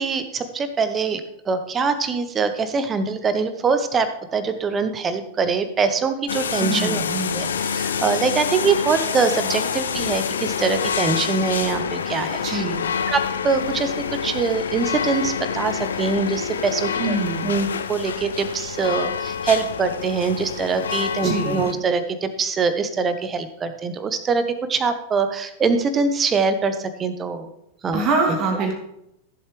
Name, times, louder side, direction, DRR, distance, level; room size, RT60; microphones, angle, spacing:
voice 1, 0.0-7.0 7.3-12.6 13.1-13.9 14.2-17.2 17.4-27.5 27.8-28.0, right 5 dB, 20° right, 10 dB, 1.0 m, -23 dB
sound 1, 6.3-21.7, left 7 dB, 65° left, 0.6 m, -27 dB
voice 2, 6.6-7.5 12.4-12.9 17.0-17.5 21.2-21.7 27.9-28.8, right 3 dB, 35° right, 1 dB, 2.5 m, -24 dB
14.5 x 7.5 x 3.3 m, 0.82 s
figure-of-eight pair, 90°, 0 cm